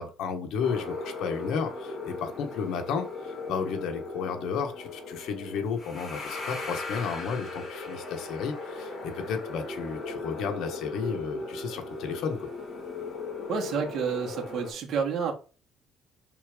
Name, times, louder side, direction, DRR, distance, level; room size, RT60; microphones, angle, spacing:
voice 1, 0.0-12.5, left 6 dB, 70° left, 1.5 m, -33 dB
sound 1, 0.6-14.7, left 3 dB, 30° left, 2.9 m, -37 dB
voice 2, 13.5-15.3, right 6 dB, 55° right, 1.9 m, -29 dB
5.6 x 4.1 x 5.2 m
cardioid pair, 120°, 0 cm